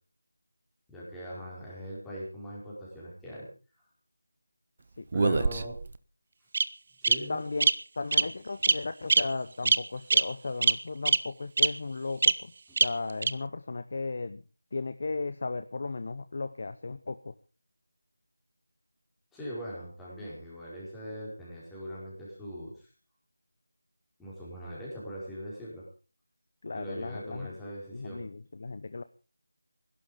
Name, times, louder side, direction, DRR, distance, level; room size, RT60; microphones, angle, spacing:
voice 1, 0.9-3.5 5.1-5.7 7.0-7.4 12.7-12.8 19.3-22.9 24.2-25.9 26.7-28.2, equal, 5° left, -8 dB, 4.9 m, -41 dB
voice 2, 5.0-5.5 7.3-12.5 12.8-14.4 14.7-17.3 26.6-27.5 27.9-29.0, left 3 dB, 40° left, 12 dB, 0.8 m, -36 dB
Bird vocalization bird call bird song, 5.1-5.9 6.5-6.6 7.0-7.1 7.6-7.7 8.1-8.3 8.6-8.8 9.1-9.2 9.7-9.8 10.1-10.2 10.6-10.7 11.1-11.2 11.6-11.7 12.2-12.3 12.8-12.9 13.2-13.3, right 4 dB, 35° right, 0.8 m, -22 dB
17.0 x 11.5 x 5.2 m, 0.36 s
figure-of-eight pair, 175°, 0 cm